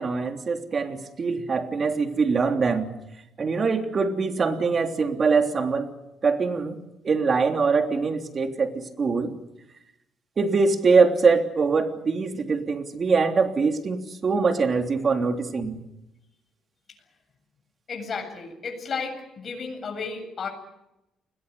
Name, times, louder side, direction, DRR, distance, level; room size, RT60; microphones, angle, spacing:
voice 1, 0.0-2.9 3.4-5.9 6.2-6.8 7.0-9.3 10.4-15.8, right 4 dB, 45° right, 4 dB, 3.3 m, -23 dB
voice 2, 17.9-20.5, left 5 dB, 50° left, 4 dB, 8.0 m, -33 dB
29.5 x 21.5 x 7.0 m, 0.90 s
cardioid pair, 90°, 0 cm